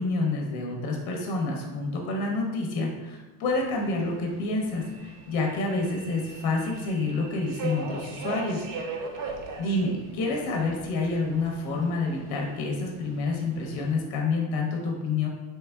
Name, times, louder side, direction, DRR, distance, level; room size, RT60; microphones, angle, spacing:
voice 1, 0.0-8.7 9.6-15.3, left 3 dB, 50° left, 0 dB, 0.7 m, -28 dB
Subway metro underground, 3.5-14.0, right 3 dB, 45° right, 0.4 m, -40 dB
3.3 x 3.2 x 2.2 m, 1.2 s
cardioid pair, 150°, 50 cm